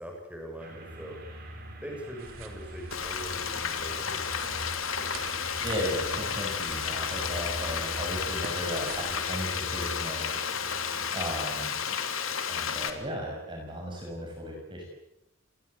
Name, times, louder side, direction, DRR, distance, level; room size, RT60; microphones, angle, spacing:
voice 1, 0.0-4.2, equal, 5° right, 1 dB, 7.4 m, -42 dB
sound 1, 0.6-12.0, equal, 45° right, 5.8 m, -44 dB
sound 2, 2.2-9.2, right 4 dB, 80° right, 3.4 m, -47 dB
Frying (food), 2.9-12.9, left 7 dB, 75° left, 2.9 m, -32 dB
voice 2, 5.6-11.7 12.5-14.9, equal, 20° right, 0 dB, 6.0 m, -36 dB
29.0 x 21.0 x 8.7 m, 0.83 s
head